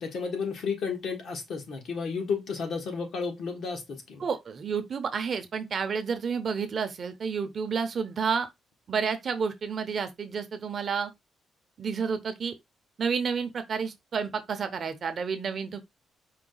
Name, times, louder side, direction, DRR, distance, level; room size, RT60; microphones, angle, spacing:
voice 1, 0.0-4.2, left 5 dB, 60° left, 1.4 m, -32 dB
voice 2, 4.2-8.5 8.9-11.1 11.8-12.5 13.0-15.8, right 6 dB, 40° right, 0.7 m, -30 dB
4.8 x 2.2 x 3.9 m
cardioid pair, 150°, 0 cm